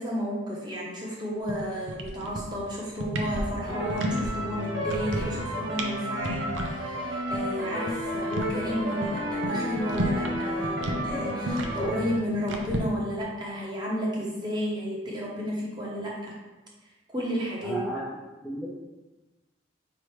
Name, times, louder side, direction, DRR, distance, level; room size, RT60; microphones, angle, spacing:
voice 1, 0.0-16.4 17.1-17.8, equal, 20° right, -4 dB, 0.9 m, -32 dB
sound 1, 1.5-1.6 1.9-2.6 2.9-4.3 4.6-5.4 5.7-5.9 6.2-6.7 7.0-7.1 7.3-7.4 7.8-10.4 10.6-12.8, right 1 dB, 85° right, 0.6 m, -31 dB
sound 2, 3.7-12.2, equal, 70° right, 0.9 m, -32 dB
voice 2, 17.6-18.0 18.4-18.7, right 1 dB, 5° left, -7 dB, 0.5 m, -32 dB
5.1 x 3.1 x 3.2 m, 1.1 s
head